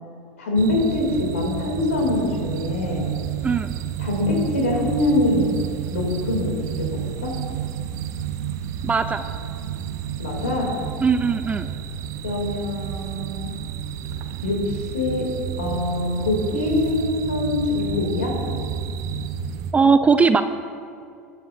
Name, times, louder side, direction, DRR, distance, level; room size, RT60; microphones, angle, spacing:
voice 1, 0.4-1.1 1.3-3.0 4.0-5.5 5.9-6.9 7.2-7.3 10.2-10.7 12.2-13.5 14.4-15.3 15.6-18.3, left 2 dB, 75° left, 0 dB, 2.7 m, -24 dB
sound 1, 0.6-19.7, right 9 dB, 45° right, 0.9 m, -31 dB
voice 2, 8.8-9.2 11.0-11.7 19.7-20.4, right 5 dB, 20° right, 10 dB, 0.4 m, -19 dB
19.0 x 9.3 x 2.6 m, 2.4 s
figure-of-eight pair, 80°, 8 cm